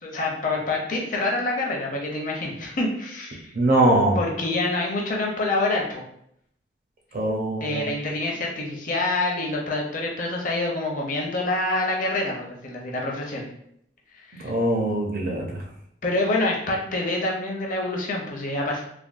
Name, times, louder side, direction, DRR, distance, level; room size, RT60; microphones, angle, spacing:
voice 1, 0.0-3.5 4.1-6.0 7.6-13.5 14.1-14.5 16.0-18.8, left 2 dB, 45° left, -1 dB, 0.6 m, -26 dB
voice 2, 3.5-4.2 7.1-7.8 14.4-15.6, right 1 dB, 50° right, 0 dB, 0.6 m, -22 dB
3.3 x 2.1 x 2.5 m, 0.71 s
head